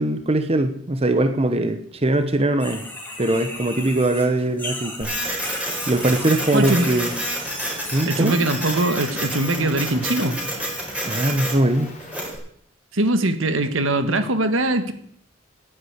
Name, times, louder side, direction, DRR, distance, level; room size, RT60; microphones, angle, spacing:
voice 1, 0.0-2.8 3.2-5.1 5.9-7.1 7.9-8.4 11.0-11.9, right 1 dB, 30° right, 8 dB, 1.0 m, -21 dB
sound 1, 2.6-8.4 8.7-9.2 10.0-10.1 10.6-10.7, left 2 dB, 10° left, 3.0 m, -36 dB
Printer, 5.0-12.4, right 1 dB, 5° right, 4.3 m, -29 dB
voice 2, 6.5-6.9 8.1-10.4 12.9-14.9, right 2 dB, 70° right, 9 dB, 1.6 m, -21 dB
sound 2, 7.0-12.2, left 3 dB, 35° left, 3.2 m, -45 dB
11.5 x 9.9 x 8.2 m, 0.65 s
head